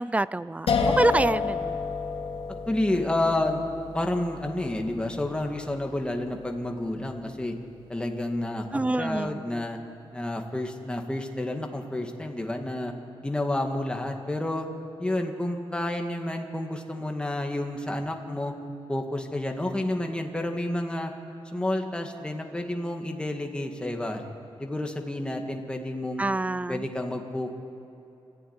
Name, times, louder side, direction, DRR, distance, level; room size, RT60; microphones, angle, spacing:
voice 1, 0.0-1.8 8.7-9.5 26.2-26.9, right 2 dB, 15° right, 18 dB, 0.4 m, -26 dB
sound 1, 0.7-7.6, left 5 dB, 80° left, 2.9 m, -31 dB
voice 2, 2.7-3.7 3.9-7.5 7.9-9.8 10.1-12.9 13.2-14.7 15.0-18.5 18.9-21.1 21.5-24.2 24.6-26.2 26.7-27.6, left 1 dB, 10° left, 3 dB, 2.1 m, -30 dB
27.0 x 14.5 x 9.6 m, 2.9 s
wide cardioid pair, 130°, 10 cm